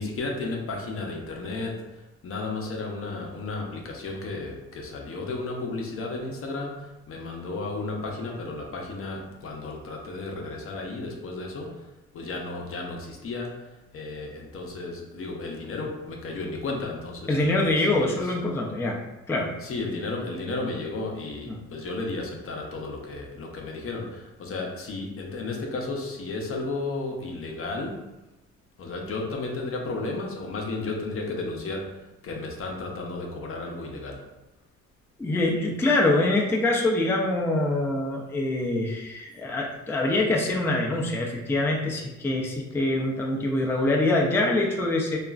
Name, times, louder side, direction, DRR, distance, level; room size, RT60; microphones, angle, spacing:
voice 1, 0.0-18.3 19.6-28.1 28.8-34.3, left 3 dB, 50° left, 0 dB, 0.6 m, -33 dB
voice 2, 17.3-19.0 19.3-19.5 21.5-21.6 35.2-45.2, left 2 dB, 10° left, -1 dB, 0.4 m, -24 dB
2.8 x 2.4 x 2.4 m, 0.99 s
cardioid pair, 90°, 30 cm